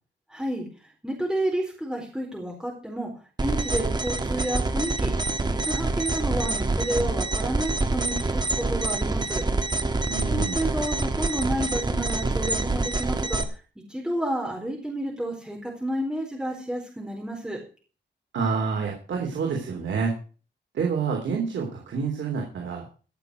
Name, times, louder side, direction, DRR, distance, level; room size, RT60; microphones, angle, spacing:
voice 1, 0.3-0.7 1.0-3.1 3.4-5.1 5.5-9.4 10.3-13.4 13.9-17.6, right 1 dB, 5° right, -2 dB, 4.4 m, -30 dB
sound 1, 3.4-13.4, right 2 dB, 25° right, 1.3 m, -26 dB
voice 2, 10.1-10.6 18.3-20.1 20.7-22.9, right 5 dB, 85° right, 1 dB, 3.4 m, -28 dB
16.5 x 6.9 x 6.4 m, 0.38 s
wide cardioid pair, 120°, 19 cm